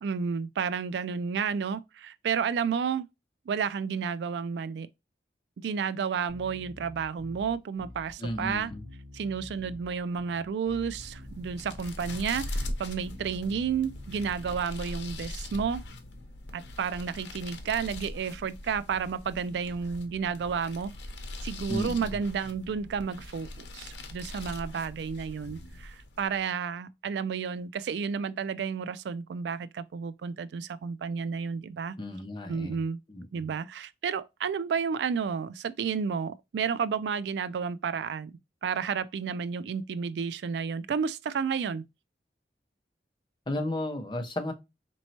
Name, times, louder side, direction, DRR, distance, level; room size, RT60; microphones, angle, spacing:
voice 1, 0.0-3.1 3.5-4.9 5.6-8.7 9.1-15.8 16.5-20.9 21.4-32.0 32.5-33.0 33.3-38.3 38.6-41.8, right 6 dB, 80° right, 0.3 m, -31 dB
Bass guitar, 6.3-15.9, left 1 dB, 55° right, 1.4 m, -47 dB
voice 2, 8.2-8.8 21.7-22.2 25.4-25.7 32.0-32.8 33.1-33.4 43.5-44.5, left 1 dB, 25° left, 0.6 m, -34 dB
sound 1, 10.9-26.4, left 1 dB, 85° left, 0.7 m, -41 dB
4.2 x 3.0 x 2.8 m
head